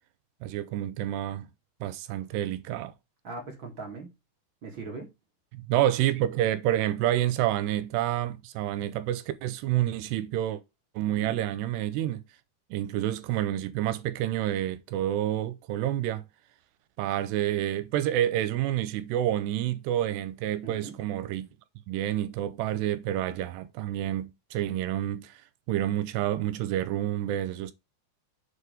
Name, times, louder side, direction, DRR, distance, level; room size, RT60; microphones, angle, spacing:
voice 1, 0.4-1.5 1.8-2.9 5.5-10.6 11.0-12.2 12.7-16.2 17.0-21.5 21.9-25.4 25.7-27.7, right 12 dB, 80° right, 2.8 m, -28 dB
voice 2, 3.2-4.1 4.6-5.1 11.2-11.3 20.6-20.9, right 3 dB, 45° right, 1.6 m, -39 dB
7.0 x 4.9 x 5.0 m
omnidirectional pair, 5.0 m